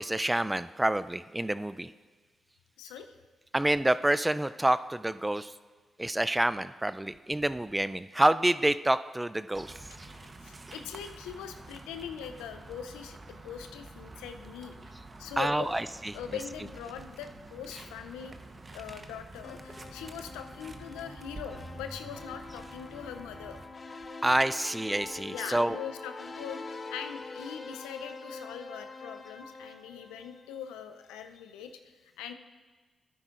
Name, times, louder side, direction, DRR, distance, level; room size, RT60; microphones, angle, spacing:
voice 1, 0.0-1.9 3.5-5.5 6.0-9.7 15.4-15.8 24.2-25.8, right 1 dB, 15° right, 14 dB, 0.3 m, -27 dB
voice 2, 2.8-3.2 9.9-15.8 16.1-18.4 18.7-23.6 25.3-32.3, left 8 dB, 85° left, 8 dB, 0.4 m, -42 dB
sound 1, 9.5-23.7, right 2 dB, 40° right, 0.9 m, -48 dB
sound 2, 19.4-30.7, left 3 dB, 45° left, 0.8 m, -45 dB
12.5 x 9.8 x 2.5 m, 1.4 s
hypercardioid pair, 40°, 0 cm